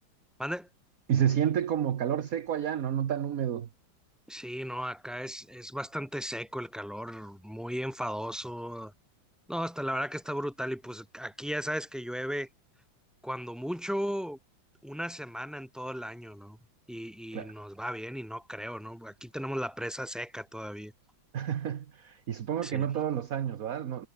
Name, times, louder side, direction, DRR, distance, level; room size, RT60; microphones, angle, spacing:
voice 1, 1.1-3.7 17.3-17.5 21.3-24.1, right 9 dB, 50° right, 1.3 m, -30 dB
voice 2, 4.3-8.9 9.5-12.5 13.2-14.4 14.8-16.6 16.9-20.9 22.6-22.9, equal, ahead, 6.4 m, -36 dB
omnidirectional pair, 2.2 m